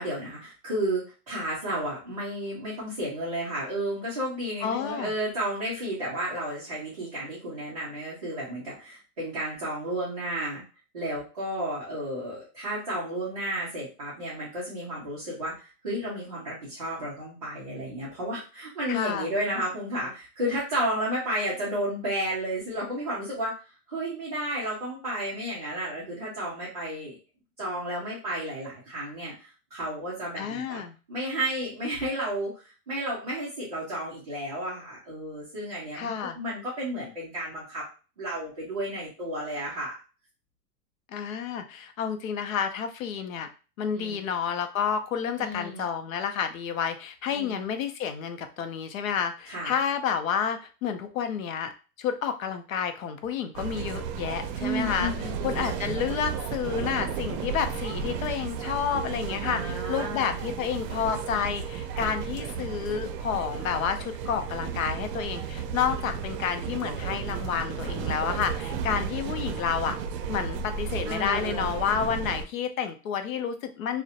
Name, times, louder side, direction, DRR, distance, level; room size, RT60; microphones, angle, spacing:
voice 1, 0.0-10.6 10.9-27.2 27.6-30.8 31.1-37.8 38.2-39.9 43.9-44.2 45.4-45.8 47.3-47.6 49.5-49.8 54.6-55.8 59.4-60.3 71.1-71.7, right 1 dB, 30° right, -8 dB, 0.4 m, -32 dB
voice 2, 4.6-5.1 18.9-19.3 30.4-31.0 35.9-36.4 41.1-43.5 43.8-51.7 52.0-55.1 55.4-70.0 70.3-74.0, left 7 dB, 60° left, 8 dB, 0.5 m, -30 dB
sound 1, 53.5-72.4, right 7 dB, 85° right, 0.5 m, -33 dB
2.3 x 2.0 x 2.7 m, 0.34 s
supercardioid pair, 180°, 47 cm